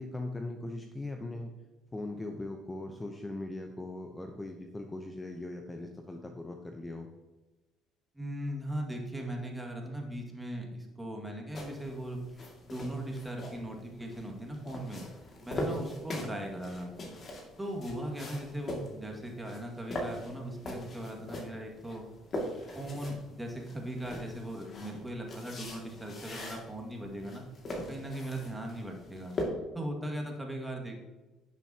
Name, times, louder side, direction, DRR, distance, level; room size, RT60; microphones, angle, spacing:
voice 1, 0.0-1.5 1.9-7.1, left 2 dB, 15° left, 4 dB, 0.8 m, -40 dB
voice 2, 8.1-15.1 15.4-16.9 17.6-22.1 22.7-27.4 27.9-29.3 29.7-31.0, right 1 dB, 10° right, 1 dB, 2.1 m, -39 dB
sound 1, 11.5-29.4, left 1 dB, 45° left, 2.3 m, -42 dB
10.0 x 7.0 x 2.9 m, 1.2 s
hypercardioid pair, 65°, 0 cm